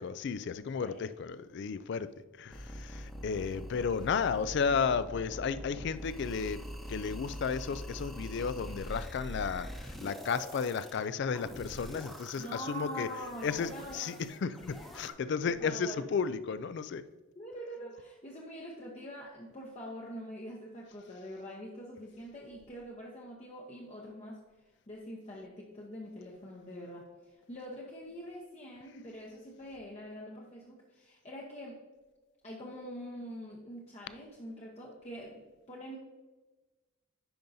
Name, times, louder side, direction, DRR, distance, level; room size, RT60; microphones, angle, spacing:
voice 1, 0.0-2.1 2.4-6.6 6.9-13.1 13.4-17.0, left 6 dB, 55° left, 14 dB, 0.3 m, -33 dB
sound 1, 2.5-15.1, equal, ahead, 0.9 m, -44 dB
voice 2, 12.4-14.4 15.4-16.0 17.3-31.8 32.4-36.0, equal, 30° left, -3 dB, 0.8 m, -45 dB
10.5 x 5.3 x 2.7 m, 1.2 s
head